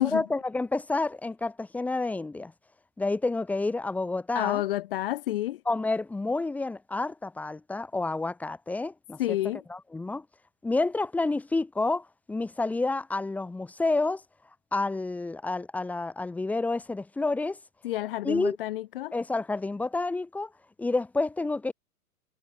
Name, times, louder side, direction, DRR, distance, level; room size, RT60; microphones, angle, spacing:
voice 1, 0.0-2.5 3.0-4.6 5.7-9.4 9.7-10.2 10.6-14.2 14.7-17.6 18.2-18.6 19.1-20.5 20.8-21.7, left 3 dB, 5° left, 1.1 m, -29 dB
voice 2, 4.3-5.6 9.2-9.6 17.8-19.1, left 15 dB, 35° left, 1.0 m, -29 dB
figure-of-eight pair, 115°, 46 cm